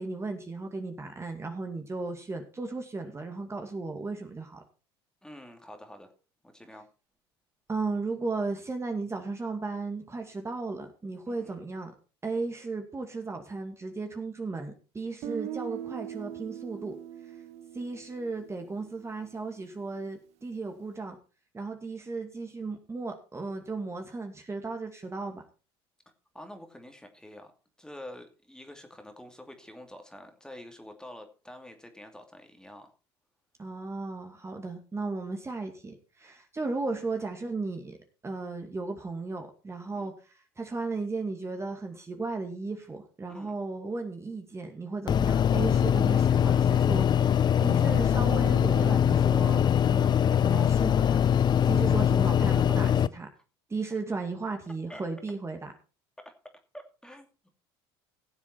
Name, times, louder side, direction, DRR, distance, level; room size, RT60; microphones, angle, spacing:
voice 1, 0.0-4.6 7.7-11.9 12.2-16.9 17.7-21.2 21.5-25.4 33.6-38.0 38.2-53.3 53.7-55.7, right 3 dB, 20° right, 4 dB, 2.3 m, -35 dB
voice 2, 5.2-6.1 6.4-6.9 11.3-11.5 26.3-27.5 27.8-32.9 39.9-40.1 43.3-43.5 53.9-54.0 54.9-55.0 56.2-56.3 56.7-57.3, left 1 dB, 5° left, 5 dB, 2.6 m, -47 dB
Guitar, 15.2-19.2, right 11 dB, 60° right, 1.1 m, -41 dB
sound 1, 45.1-53.1, left 9 dB, 35° left, 0.5 m, -23 dB
17.0 x 7.4 x 4.4 m, 0.34 s
hypercardioid pair, 75°, 13 cm